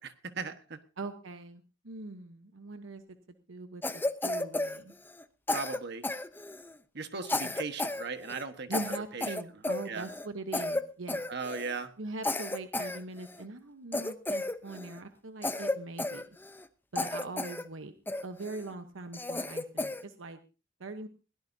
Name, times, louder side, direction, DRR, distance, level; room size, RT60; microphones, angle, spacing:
voice 1, 0.0-0.8 5.5-6.1 6.9-8.8 9.1-9.2 9.8-10.1 11.3-11.9, right 4 dB, 60° right, 8 dB, 1.4 m, -37 dB
voice 2, 1.0-3.0 3.3-4.9 7.4-7.5 8.7-11.2 12.0-16.2 16.9-17.9 18.2-20.4 20.8-21.1, right 2 dB, 90° right, 8 dB, 1.0 m, -42 dB
Cough, 3.8-5.2 5.5-6.8 7.2-8.0 8.3-8.4 8.7-10.3 10.5-10.8 11.1-11.8 12.2-13.4 13.9-15.0 15.4-16.7 17.0-17.6 18.1-18.6 19.1-20.0, left 2 dB, 10° left, 0.7 m, -33 dB
21.5 x 17.0 x 2.7 m, 0.33 s
head